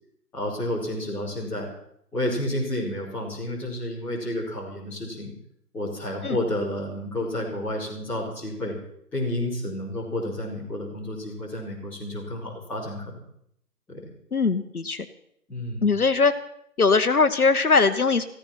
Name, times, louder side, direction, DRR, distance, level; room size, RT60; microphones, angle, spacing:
voice 1, 0.3-1.7 2.1-5.3 5.7-8.7 9.1-13.2 13.9-14.0 15.5-15.9, left 1 dB, 5° left, -10 dB, 3.1 m, -30 dB
voice 2, 14.3-15.0 15.8-16.3 16.8-18.2, left 4 dB, 65° left, 10 dB, 1.1 m, -20 dB
15.5 x 14.5 x 6.0 m, 0.72 s
figure-of-eight pair, 160°, 47 cm